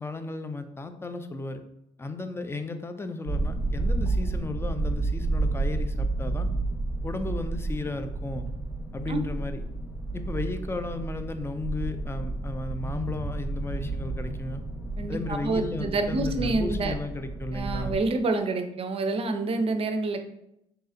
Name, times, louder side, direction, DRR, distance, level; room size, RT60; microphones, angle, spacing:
voice 1, 0.0-1.6 2.0-6.5 7.0-8.5 8.9-9.6 10.1-14.6 15.1-17.9, left 3 dB, 15° left, 8 dB, 0.4 m, -34 dB
sound 1, 3.3-18.0, right 2 dB, 10° right, 0.9 m, -31 dB
voice 2, 15.0-16.9 17.5-20.2, right 3 dB, 35° right, 7 dB, 0.5 m, -27 dB
3.9 x 2.8 x 2.5 m, 0.81 s
hypercardioid pair, 55°, 16 cm